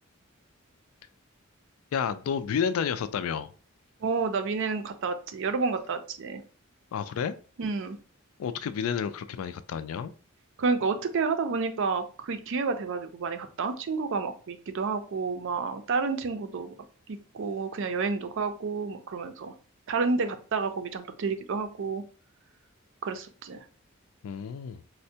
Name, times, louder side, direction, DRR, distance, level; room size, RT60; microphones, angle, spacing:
voice 1, 1.9-3.5 6.9-7.3 8.4-10.1 24.2-24.8, left 7 dB, 75° left, 0.3 m, -30 dB
voice 2, 4.0-6.4 7.6-8.0 10.6-16.7 17.3-19.5 19.9-22.0 23.0-23.6, right 4 dB, 60° right, 0.4 m, -30 dB
4.3 x 2.1 x 2.7 m
head